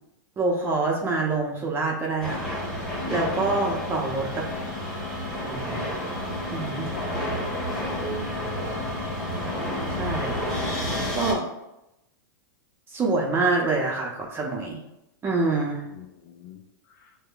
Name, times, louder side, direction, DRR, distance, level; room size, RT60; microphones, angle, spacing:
voice 1, 0.4-2.5 3.1-4.5 5.4-5.9 6.5-6.9 9.9-10.4 11.1-11.4 12.9-14.8 15.2-15.9, right 3 dB, 20° right, -1 dB, 0.7 m, -26 dB
sound 1, 2.2-11.3, left 1 dB, 5° left, 1.3 m, -30 dB
voice 2, 3.5-4.0 6.9-8.1 15.9-17.2, left 8 dB, 45° left, 1 dB, 0.5 m, -42 dB
6.4 x 2.2 x 2.4 m, 0.88 s
hypercardioid pair, 130°, 11 cm